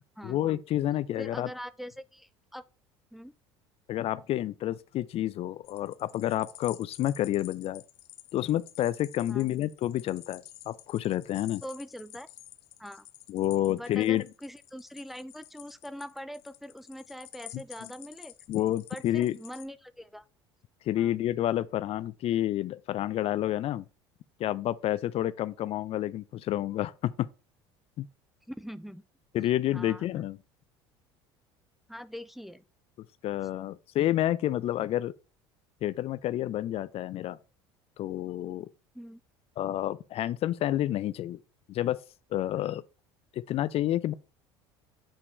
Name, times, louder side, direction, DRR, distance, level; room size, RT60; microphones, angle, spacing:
voice 1, 0.2-1.5 3.9-7.8 8.3-11.6 13.3-14.2 17.5-17.6 18.5-19.4 20.9-23.8 24.4-27.1 28.0-28.1 29.3-30.4 33.2-35.1 35.8-37.4 38.0-38.7 39.6-41.4 41.7-42.0 42.3-42.8 43.3-44.1, left 13 dB, 45° left, 0.4 m, -29 dB
voice 2, 1.2-2.6 3.1-3.3 9.3-9.5 11.6-12.3 12.8-13.1 13.7-18.3 18.9-20.2 21.0-21.1 28.5-29.0 29.7-30.1 31.9-32.6 38.9-39.2, equal, ahead, 0.5 m, -42 dB
sound 1, 5.6-19.6, left 14 dB, 75° left, 0.7 m, -51 dB
7.2 x 5.4 x 3.1 m
hypercardioid pair, 70°, 14 cm